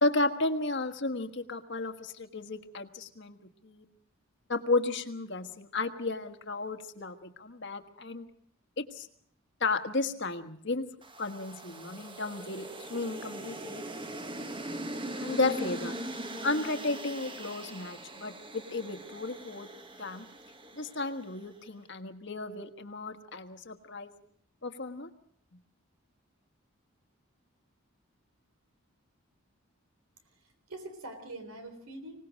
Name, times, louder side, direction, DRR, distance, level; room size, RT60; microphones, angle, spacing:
voice 1, 0.0-3.4 3.6-3.8 4.5-8.2 8.8-9.1 9.6-10.8 11.2-13.8 15.2-16.0 16.4-19.7 20.0-20.2 20.7-24.1 24.6-25.1, left 3 dB, 55° left, 8 dB, 1.5 m, -33 dB
sound 1, 11.0-21.4, right 1 dB, 25° right, 1.3 m, -41 dB
voice 2, 30.3-32.2, right 2 dB, 90° right, 8 dB, 3.9 m, -44 dB
25.0 x 18.5 x 6.4 m, 0.62 s
head